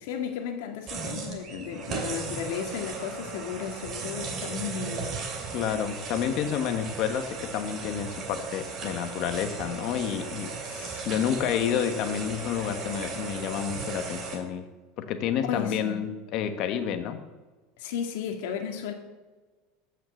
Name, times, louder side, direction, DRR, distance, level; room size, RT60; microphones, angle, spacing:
voice 1, 0.0-5.1 10.7-11.5 15.4-16.0 17.8-18.9, left 7 dB, 75° left, 1.9 m, -34 dB
sound 1, 0.9-14.4, right 4 dB, 35° right, 2.6 m, -36 dB
voice 2, 5.5-10.5 11.0-14.7 15.0-17.2, left 9 dB, 50° left, 1.3 m, -29 dB
14.5 x 5.9 x 7.2 m
supercardioid pair, 145°, 0 cm